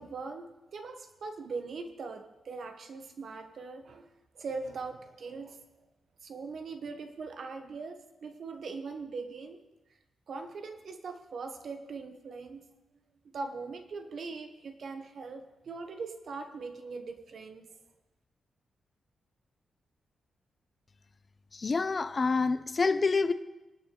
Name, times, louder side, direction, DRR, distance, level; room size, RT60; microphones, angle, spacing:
voice 1, 0.0-4.1 4.3-5.6 6.2-9.6 10.3-12.7 13.2-17.7, right 4 dB, 50° right, 1.0 m, -41 dB
voice 2, 21.5-23.3, left 4 dB, 25° left, 0.6 m, -27 dB
25.0 x 9.4 x 3.9 m
wide cardioid pair, 175°, 0 cm